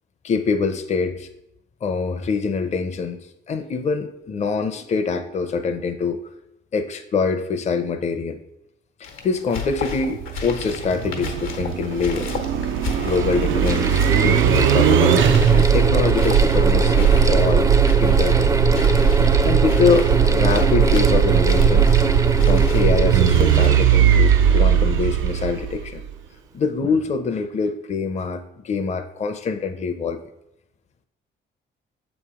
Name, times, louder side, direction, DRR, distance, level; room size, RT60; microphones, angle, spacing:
voice 1, 0.2-1.3 1.8-3.2 3.5-6.3 6.7-8.4 9.0-12.4 13.0-17.7 18.0-18.6 19.4-26.0 26.5-30.2, left 5 dB, 35° left, 7 dB, 0.5 m, -24 dB
sound 1, 9.0-23.7, left 5 dB, 85° left, 1.0 m, -35 dB
sound 2, 10.1-26.1, right 8 dB, 80° right, 0.4 m, -18 dB
Mechanical fan, 11.8-11.9 12.8-25.4, right 2 dB, 15° right, 0.4 m, -25 dB
6.8 x 3.1 x 4.8 m, 0.80 s
cardioid pair, 90°, 20 cm